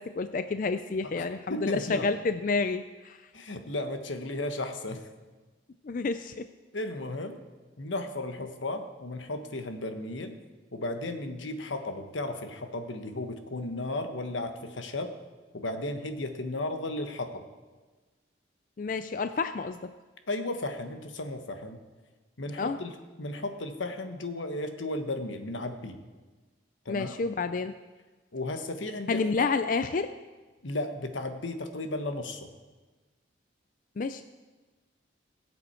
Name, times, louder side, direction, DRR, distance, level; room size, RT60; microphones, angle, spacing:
voice 1, 0.0-3.2 5.8-6.5 18.8-19.9 22.6-22.8 26.9-27.8 29.1-30.1 34.0-34.2, left 4 dB, 45° left, 10 dB, 0.4 m, -29 dB
voice 2, 1.2-2.1 3.3-5.0 6.7-7.4 7.8-10.3 10.7-15.1 15.5-17.4 20.3-21.8 22.4-22.9 23.2-26.0 26.8-27.1 28.3-29.5 30.6-32.5, left 2 dB, 90° left, 7 dB, 1.2 m, -34 dB
20.5 x 7.9 x 4.4 m, 1.3 s
head